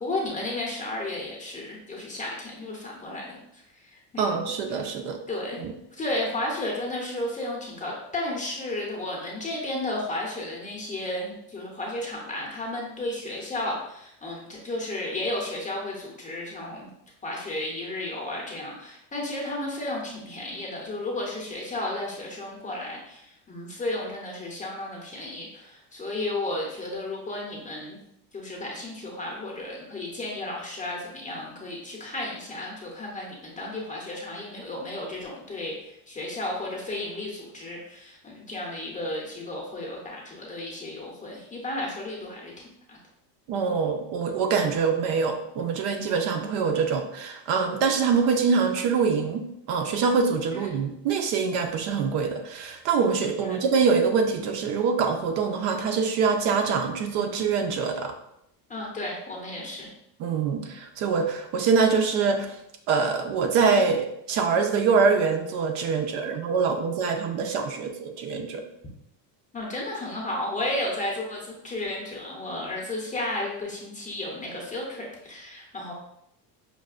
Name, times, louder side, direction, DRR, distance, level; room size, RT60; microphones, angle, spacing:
voice 1, 0.0-4.4 5.3-5.6 5.9-16.9 17.2-28.0 28.3-35.7 36.1-42.5 42.9-43.0 53.4-53.6 58.7-59.9 69.5-75.9, left 1 dB, 15° left, -2 dB, 0.6 m, -33 dB
voice 2, 4.2-5.2 5.6-5.7 43.5-58.1 60.2-62.6 62.9-68.6, right 5 dB, 55° right, 5 dB, 0.6 m, -24 dB
5.4 x 2.5 x 2.4 m, 0.78 s
cardioid pair, 140°, 49 cm